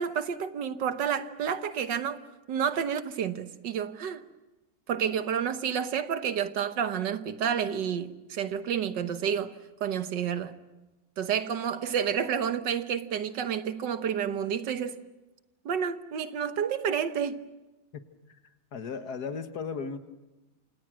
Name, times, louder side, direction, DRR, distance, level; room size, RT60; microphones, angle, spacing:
voice 1, 0.0-2.2 2.5-4.2 4.9-9.5 9.8-10.6 11.2-15.0 15.7-17.4, right 8 dB, 90° right, 1.8 m, -30 dB
voice 2, 17.9-20.0, left 5 dB, 65° left, 1.9 m, -37 dB
27.5 x 27.5 x 6.2 m
omnidirectional pair, 1.9 m